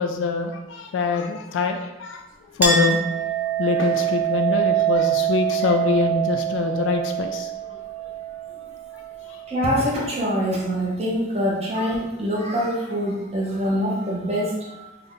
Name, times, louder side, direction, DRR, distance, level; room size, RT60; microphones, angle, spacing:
voice 1, 0.0-7.7 8.9-9.4, left 4 dB, 85° left, 5 dB, 0.3 m, -25 dB
Chink clink, 2.6-9.7, right 9 dB, 10° right, 0.5 m, -25 dB
voice 2, 9.5-14.7, equal, 35° right, -4 dB, 0.8 m, -24 dB
3.5 x 2.2 x 3.7 m, 0.99 s
head